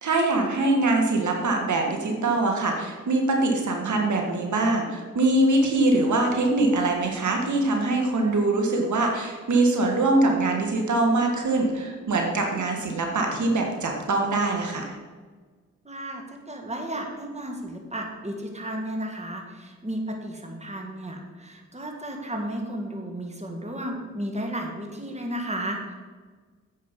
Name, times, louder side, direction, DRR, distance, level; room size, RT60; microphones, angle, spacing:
voice 1, 0.0-14.9, right 2 dB, 75° right, 2 dB, 1.7 m, -23 dB
voice 2, 15.8-25.9, right 1 dB, 20° right, 2 dB, 2.1 m, -33 dB
9.6 x 7.8 x 5.2 m, 1.4 s
cardioid pair, 60°, 30 cm